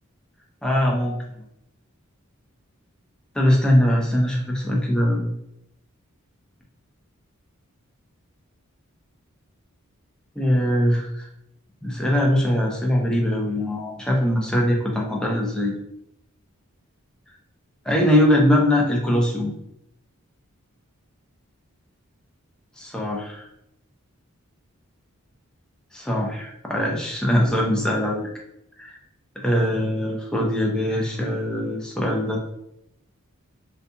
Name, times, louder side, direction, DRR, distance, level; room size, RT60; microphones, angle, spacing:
voice 1, 0.6-1.1 3.4-5.3 10.4-11.3 11.8-15.7 17.9-19.5 22.8-23.4 25.9-28.3 28.8-29.0 29.4-32.4, left 1 dB, 5° left, -2 dB, 0.4 m, -22 dB
2.5 x 2.2 x 2.6 m, 0.80 s
head